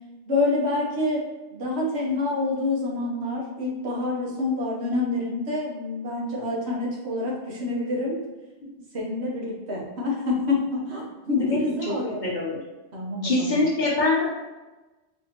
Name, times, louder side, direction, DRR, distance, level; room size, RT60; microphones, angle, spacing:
voice 1, 0.3-1.3 1.5-8.3 8.9-12.4 12.9-13.6, left 2 dB, 70° right, -3 dB, 1.2 m, -27 dB
voice 2, 11.8-12.6 13.2-14.2, left 2 dB, 50° left, -3 dB, 0.8 m, -24 dB
4.2 x 2.7 x 2.8 m, 1.1 s
omnidirectional pair, 1.1 m